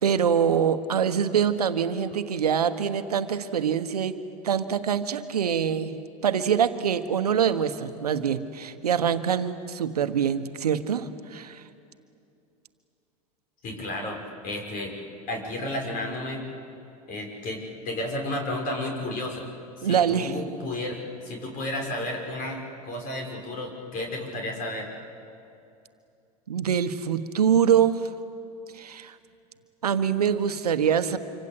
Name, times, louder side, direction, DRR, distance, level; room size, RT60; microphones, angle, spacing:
voice 1, 0.0-11.6 19.8-20.4 26.5-28.1 28.7-29.1 29.8-31.2, right 8 dB, 90° right, 10 dB, 1.3 m, -24 dB
voice 2, 13.6-14.9 15.3-16.4 17.1-19.5 19.8-24.9, left 1 dB, 45° left, 2 dB, 5.9 m, -32 dB
26.5 x 25.0 x 8.6 m, 2.6 s
hypercardioid pair, 90°, 19 cm